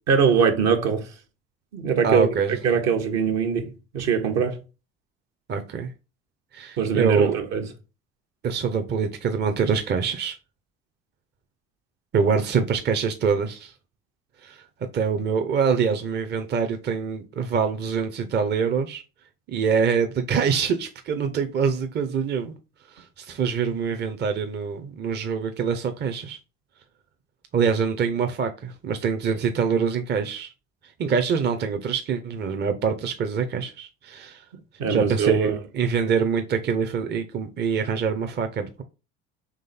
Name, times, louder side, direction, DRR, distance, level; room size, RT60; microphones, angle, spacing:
voice 1, 0.1-1.1 1.7-2.3 2.6-4.6 6.8-7.7 34.8-35.6, right 6 dB, 65° right, 1.2 m, -22 dB
voice 2, 2.0-2.6 5.5-5.9 6.5-7.4 8.4-10.4 12.1-13.7 14.4-14.6 14.9-19.0 19.5-22.5 23.0-26.4 27.5-30.5 31.0-34.4 34.9-38.8, right 6 dB, 35° right, 0.7 m, -25 dB
3.8 x 3.2 x 4.1 m
hypercardioid pair, 70°, 29 cm